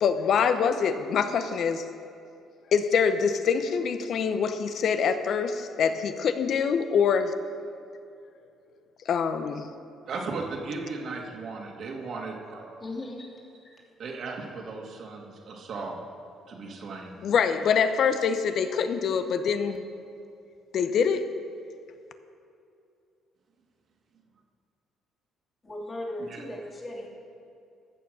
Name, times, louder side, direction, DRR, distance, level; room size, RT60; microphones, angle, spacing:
voice 1, 0.0-1.9 2.7-7.3 9.1-9.7 17.2-19.8 20.7-21.2, left 6 dB, 60° left, 10 dB, 0.8 m, -25 dB
voice 2, 10.1-12.8 14.0-16.1 16.5-17.2 26.2-26.4, right 3 dB, 60° right, 0 dB, 2.2 m, -36 dB
voice 3, 12.8-13.3 25.6-27.1, left 1 dB, 30° left, -1 dB, 2.7 m, -37 dB
14.5 x 7.1 x 6.3 m, 2.5 s
cardioid pair, 85°, 0 cm